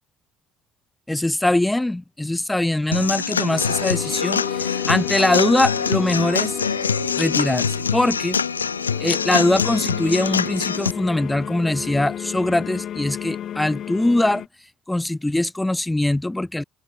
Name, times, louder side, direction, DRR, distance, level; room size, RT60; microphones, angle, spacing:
voice 1, 1.1-6.6 7.2-8.4 9.0-14.4 14.9-16.6, left 1 dB, 10° left, 2.2 m, -22 dB
Human voice / Acoustic guitar / Drum, 2.9-10.9, left 6 dB, 85° left, 1.0 m, -24 dB
sound 1, 3.5-14.5, left 10 dB, 50° left, 1.3 m, -33 dB
sound 2, 4.7-10.5, left 28 dB, 70° left, 6.4 m, -44 dB
figure-of-eight pair, 55°, 0 cm